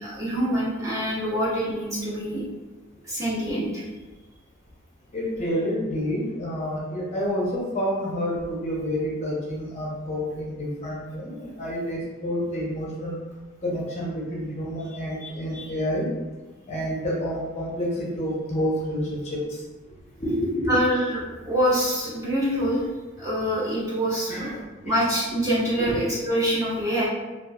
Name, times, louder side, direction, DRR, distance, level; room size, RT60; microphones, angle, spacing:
voice 1, 0.0-2.4 3.0-3.8 15.2-15.7 20.7-22.9 23.2-24.5 24.8-27.1, equal, 15° right, -8 dB, 0.6 m, -25 dB
voice 2, 5.1-13.2 13.6-16.1 16.7-19.6 20.2-20.7 24.3-24.9 25.8-26.0, equal, 30° left, -4 dB, 0.5 m, -29 dB
2.9 x 2.2 x 2.2 m, 1.2 s
head